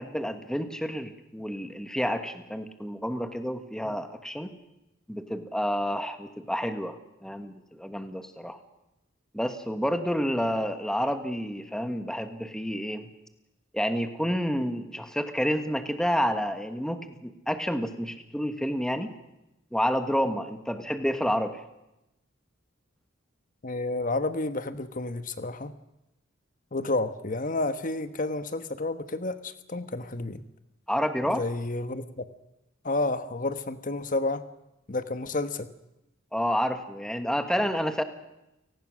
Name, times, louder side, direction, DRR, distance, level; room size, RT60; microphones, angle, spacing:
voice 1, 0.0-4.5 5.1-8.6 9.3-13.1 13.7-19.1 19.7-21.6 30.9-31.4 36.3-38.0, equal, 5° left, 8 dB, 1.4 m, -29 dB
voice 2, 23.6-25.7 26.7-30.4 31.2-32.2 32.8-34.4 34.9-35.7, left 2 dB, 40° left, 11 dB, 1.2 m, -30 dB
29.5 x 18.5 x 6.4 m, 0.91 s
head